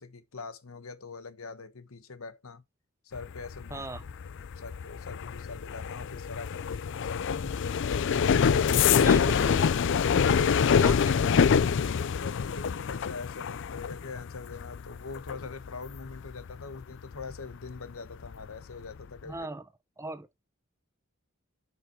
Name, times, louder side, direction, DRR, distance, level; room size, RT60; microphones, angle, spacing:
voice 1, 0.0-2.6 3.0-3.8 4.6-7.6 8.1-9.1 10.1-11.0 11.6-19.5, left 4 dB, 80° left, 1.1 m, -42 dB
sound 1, 3.2-17.8 18.1-18.6 18.8-19.2, left 6 dB, 60° left, 0.4 m, -26 dB
voice 2, 3.7-4.2 8.9-9.8 10.8-11.4 19.2-19.7 20.0-20.4, right 2 dB, 15° right, 0.7 m, -38 dB
7.4 x 5.8 x 4.5 m
head